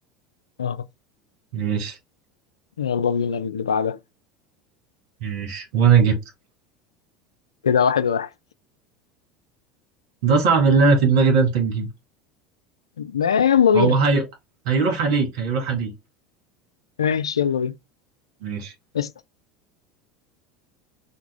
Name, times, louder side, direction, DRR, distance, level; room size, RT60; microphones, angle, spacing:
voice 1, 1.5-2.0 5.2-6.2 10.2-11.9 13.7-14.2 14.7-15.9 18.4-18.7, right 5 dB, 60° right, 1.9 m, -19 dB
voice 2, 2.8-4.0 7.6-8.3 13.0-14.0 17.0-17.7 18.9-19.1, left 7 dB, 85° left, 0.3 m, -21 dB
3.9 x 2.3 x 3.6 m
figure-of-eight pair, 75°, 3 cm